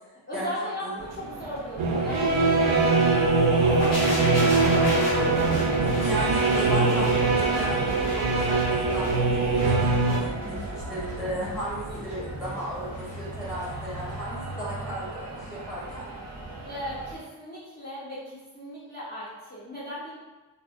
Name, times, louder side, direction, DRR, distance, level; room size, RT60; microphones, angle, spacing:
voice 1, 0.3-2.5 2.9-5.2 11.9-12.2 16.6-20.1, equal, 25° left, -11 dB, 0.7 m, -37 dB
sound 1, 1.0-17.2, right 2 dB, 35° right, 0.5 m, -40 dB
sound 2, 1.8-10.2, right 3 dB, 90° right, 0.6 m, -22 dB
sound 3, 3.8-13.7 14.0-14.2, equal, 90° left, 1.3 m, -33 dB
voice 2, 5.8-16.1, right 1 dB, ahead, -7 dB, 1.0 m, -35 dB
2.5 x 2.1 x 2.4 m, 1.2 s
wide cardioid pair, 85°, 48 cm